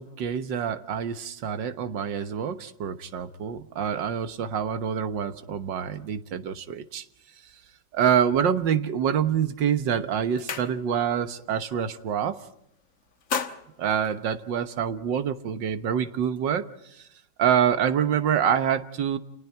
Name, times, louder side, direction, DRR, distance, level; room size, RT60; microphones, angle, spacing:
voice 1, 0.0-7.0 7.9-12.4 13.8-16.7 17.4-19.2, right 8 dB, 80° right, 10 dB, 1.9 m, -26 dB
sound 1, 9.5-9.7 10.0-11.2 11.5-11.8 12.1-12.7 13.0-14.9, left 6 dB, 50° left, 1.5 m, -35 dB
30.0 x 28.0 x 4.5 m, 0.76 s
omnidirectional pair, 1.9 m